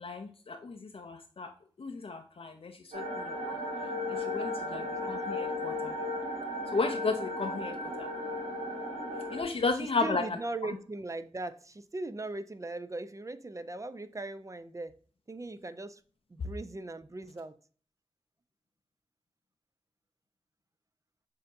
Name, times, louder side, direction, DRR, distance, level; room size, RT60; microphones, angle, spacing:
voice 1, 0.0-1.5 1.8-3.6 4.1-6.0 6.7-8.1 9.3-10.4, left 4 dB, 60° left, 0.5 m, -34 dB
sound 1, 2.9-9.4, left 2 dB, 80° right, 1.4 m, -35 dB
voice 2, 4.7-5.1 9.8-15.0 15.3-16.0 16.3-17.5, right 2 dB, 30° right, 0.4 m, -39 dB
6.4 x 2.6 x 2.6 m
cardioid pair, 40°, 11 cm